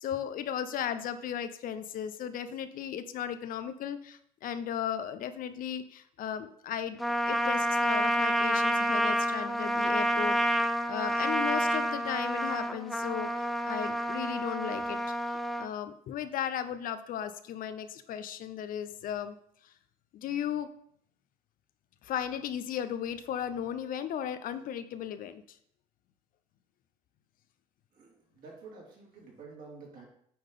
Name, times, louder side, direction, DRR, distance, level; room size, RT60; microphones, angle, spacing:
voice 1, 0.0-7.0 7.3-15.0 15.6-19.3 19.6-19.7 20.1-20.7 22.0-25.4, left 9 dB, 60° left, 11 dB, 0.7 m, -36 dB
Trumpet, 7.0-15.7, equal, ahead, 0.6 m, -29 dB
voice 2, 27.9-30.1, right 4 dB, 60° right, -3 dB, 3.5 m, -49 dB
8.5 x 3.6 x 5.6 m, 0.66 s
supercardioid pair, 80°, 16 cm